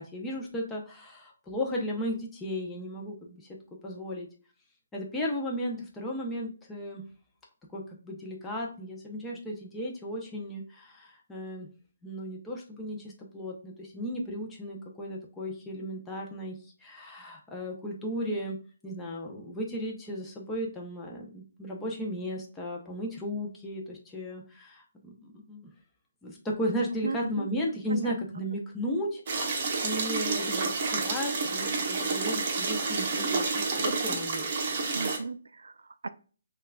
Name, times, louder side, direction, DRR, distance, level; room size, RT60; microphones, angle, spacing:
voice 1, 0.0-3.5 3.8-4.3 4.9-7.0 7.7-11.7 12.0-18.6 18.8-25.7 26.2-34.5, equal, 10° left, -2 dB, 0.6 m, -35 dB
voice 2, 27.0-27.5 27.9-28.4 34.9-36.1, right 4 dB, 85° right, 13 dB, 0.3 m, -36 dB
sound 1, 29.3-35.2, right 4 dB, 40° right, 0.8 m, -29 dB
5.5 x 2.4 x 2.2 m, 0.39 s
hypercardioid pair, 165°, 0 cm